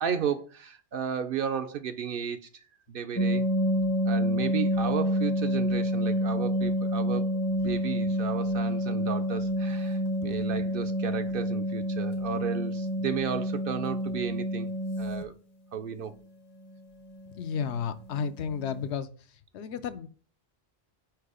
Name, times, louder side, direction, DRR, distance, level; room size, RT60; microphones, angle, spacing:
voice 1, 0.0-3.5 4.0-14.7 15.0-15.3 15.7-16.1, right 7 dB, 60° right, 0.6 m, -34 dB
sound 1, 3.2-15.2 17.1-17.3 17.6-17.7 18.1-18.3 18.6-18.8, equal, 30° left, 0.6 m, -28 dB
voice 2, 17.4-19.1 19.5-20.1, left 7 dB, 75° left, 0.9 m, -32 dB
4.7 x 4.6 x 4.9 m
omnidirectional pair, 1.2 m